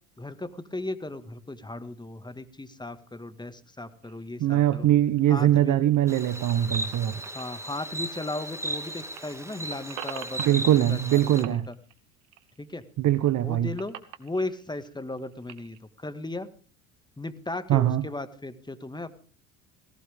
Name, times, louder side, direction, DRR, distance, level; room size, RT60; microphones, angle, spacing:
voice 1, 0.2-4.9 5.3-5.8 7.3-11.7 12.6-12.8 13.4-16.5 17.2-19.2, left 2 dB, 10° left, 11 dB, 1.9 m, -36 dB
sound 1, 4.0-8.8 9.0-11.1 11.4-12.8 13.2-15.8, right 12 dB, 75° right, 1.9 m, -46 dB
voice 2, 4.4-7.2 10.4-11.7 13.0-13.7 17.7-18.1, right 12 dB, 50° right, 14 dB, 1.1 m, -22 dB
Insect, 6.1-11.4, right 1 dB, 5° right, 2.3 m, -36 dB
17.5 x 17.0 x 3.6 m, 0.41 s
hypercardioid pair, 65°, 40 cm